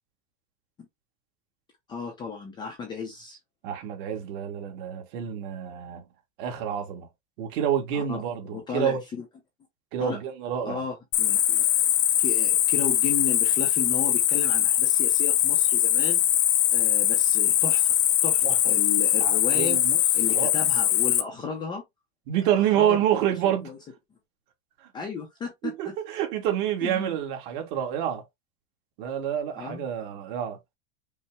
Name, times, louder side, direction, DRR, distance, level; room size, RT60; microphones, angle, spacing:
voice 1, 1.9-3.4 7.9-8.2 8.5-9.3 10.0-10.2 10.7-11.6 12.2-16.2 16.7-17.9 18.2-19.8 20.1-21.8 22.7-23.0 23.4-23.8 24.9-25.9 26.8-27.1 29.6-29.8, left 5 dB, 15° left, 0.5 m, -34 dB
voice 2, 3.6-6.0 6.4-7.1 7.4-9.0 9.9-10.8 18.4-18.6 19.2-20.0 20.3-20.5 22.3-23.7 25.6-28.2 29.0-30.6, right 10 dB, 50° right, 1.3 m, -28 dB
Cricket, 11.1-21.2, left 12 dB, 55° left, 0.7 m, -22 dB
5.4 x 2.0 x 3.3 m
supercardioid pair, 170°, 34 cm